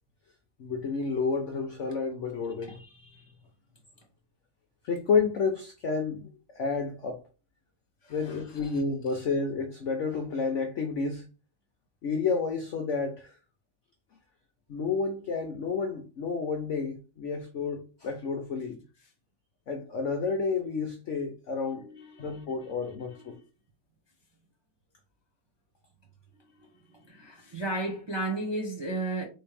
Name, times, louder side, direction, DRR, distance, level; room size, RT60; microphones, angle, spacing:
voice 1, 0.6-2.8 4.8-7.2 8.1-11.3 12.0-13.4 14.7-18.8 19.7-21.9 22.2-23.3, left 4 dB, 70° left, 0.7 m, -30 dB
voice 2, 8.0-8.4 21.7-22.4 22.9-23.2 26.5-29.2, right 2 dB, 25° right, 0.5 m, -35 dB
4.0 x 3.5 x 3.3 m
omnidirectional pair, 2.0 m